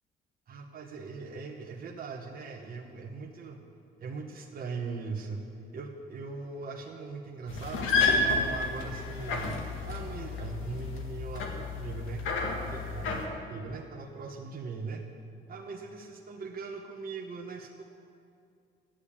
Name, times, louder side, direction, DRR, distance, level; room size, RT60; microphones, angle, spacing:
voice 1, 0.5-3.6 4.0-5.4 5.7-12.2 12.6-15.0 15.5-17.8, right 4 dB, 50° right, 1 dB, 1.2 m, -40 dB
sound 1, 7.5-13.3, left 3 dB, 85° left, 1.8 m, -31 dB
11.5 x 8.9 x 8.6 m, 2.4 s
cardioid pair, 90°, 20 cm